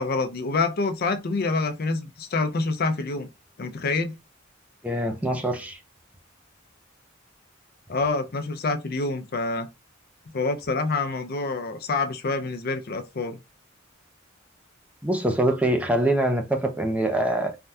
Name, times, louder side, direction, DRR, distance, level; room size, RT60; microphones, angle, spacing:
voice 1, 0.0-3.3 3.6-4.2 7.9-9.7 10.3-13.4, left 3 dB, 50° left, 0.5 m, -27 dB
voice 2, 4.8-5.8 15.0-17.6, right 1 dB, 5° right, 0.5 m, -24 dB
3.3 x 2.2 x 2.6 m
head